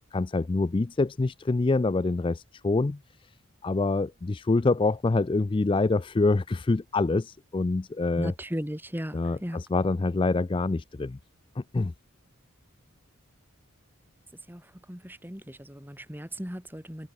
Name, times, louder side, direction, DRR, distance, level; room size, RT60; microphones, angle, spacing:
voice 1, 0.1-3.0 3.6-8.3 9.1-11.2 11.6-11.9, left 3 dB, 25° left, 0.3 m, -26 dB
voice 2, 8.2-9.6 14.5-14.6 14.9-17.1, equal, 10° right, 2.8 m, -36 dB
head